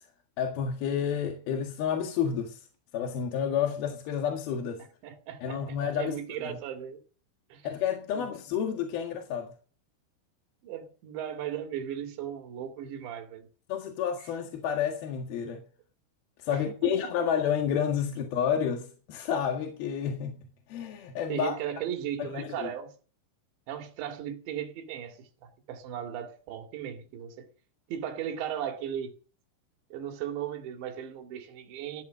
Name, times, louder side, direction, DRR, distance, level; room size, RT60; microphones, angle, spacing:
voice 1, 0.4-2.6 2.9-4.8 5.4-6.6 7.6-9.5 13.7-15.6 16.4-20.4 20.7-21.5 22.2-22.7, left 8 dB, 60° left, 3.1 m, -30 dB
voice 2, 5.0-7.0 7.5-7.7 8.1-8.3 10.6-13.5 16.5-17.3 21.3-22.9 23.7-27.5 27.9-29.1 29.9-32.0, right 10 dB, 65° right, 4.3 m, -37 dB
16.0 x 12.0 x 6.7 m
omnidirectional pair, 5.7 m